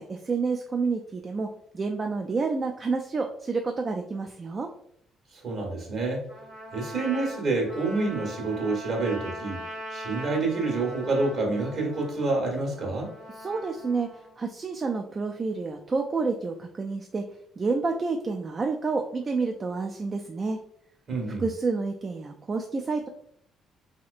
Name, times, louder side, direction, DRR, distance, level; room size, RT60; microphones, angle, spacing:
voice 1, 0.0-1.5 1.7-4.7 13.4-14.1 14.4-17.2 17.6-20.6 21.4-23.1, right 4 dB, 35° right, 3 dB, 0.3 m, -29 dB
voice 2, 5.3-6.2 6.7-9.6 9.9-13.1 21.1-21.5, right 3 dB, 55° right, -1 dB, 1.3 m, -28 dB
Trumpet, 6.3-14.3, equal, 80° right, 1.4 m, -41 dB
3.1 x 2.8 x 2.4 m, 0.71 s
hypercardioid pair, 45°, 0 cm